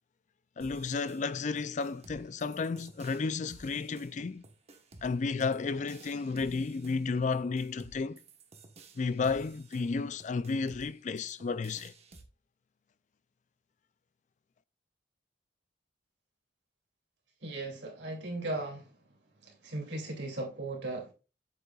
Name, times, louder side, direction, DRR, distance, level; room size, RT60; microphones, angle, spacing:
voice 1, 0.6-4.4 5.0-8.2 9.0-11.9, left 4 dB, 40° left, 0.4 m, -32 dB
sound 1, 0.6-12.2, right 3 dB, 35° right, 1.1 m, -55 dB
voice 2, 17.4-18.9 19.4-21.1, right 2 dB, 70° right, 2.6 m, -37 dB
8.3 x 8.0 x 2.4 m
head